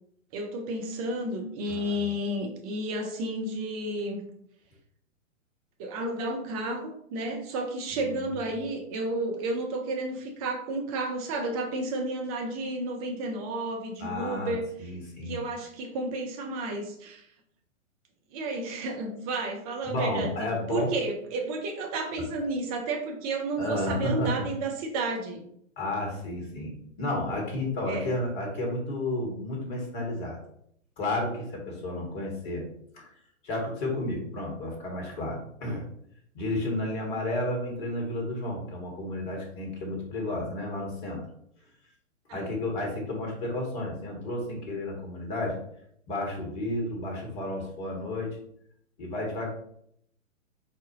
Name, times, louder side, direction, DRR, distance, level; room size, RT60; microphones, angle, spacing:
voice 1, 0.3-4.2 5.8-14.7 15.3-17.3 18.3-25.4 27.9-28.1 42.3-42.5, right 2 dB, 30° right, 2 dB, 0.9 m, -32 dB
voice 2, 1.7-2.1 7.9-8.5 14.0-15.4 19.8-20.9 23.6-24.5 25.8-26.7 27.0-30.4 31.0-32.6 32.9-33.1 33.4-35.8 36.3-41.2 42.3-45.6 46.1-48.4 49.0-49.5, left 1 dB, 40° left, 0 dB, 1.7 m, -32 dB
4.2 x 4.1 x 3.0 m, 0.70 s
figure-of-eight pair, 115°, 40 cm